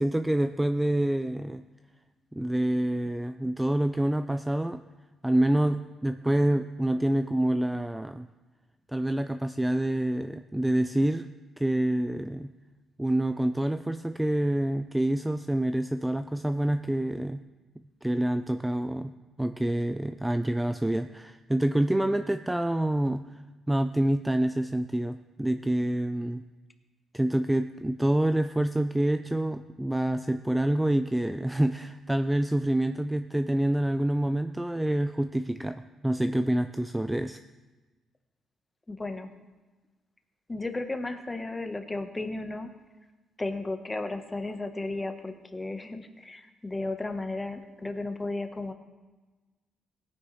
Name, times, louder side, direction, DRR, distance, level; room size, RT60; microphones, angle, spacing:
voice 1, 0.0-1.6 2.3-4.8 5.2-8.3 8.9-11.3 11.6-12.5 13.0-17.4 18.0-23.3 23.7-26.4 27.1-37.4, right 1 dB, 10° right, 9 dB, 0.4 m, -27 dB
voice 2, 38.9-39.3 40.5-42.7 43.4-48.7, left 2 dB, 20° left, 7 dB, 1.1 m, -34 dB
17.5 x 9.8 x 3.2 m, 1.2 s
cardioid pair, 90°, 0 cm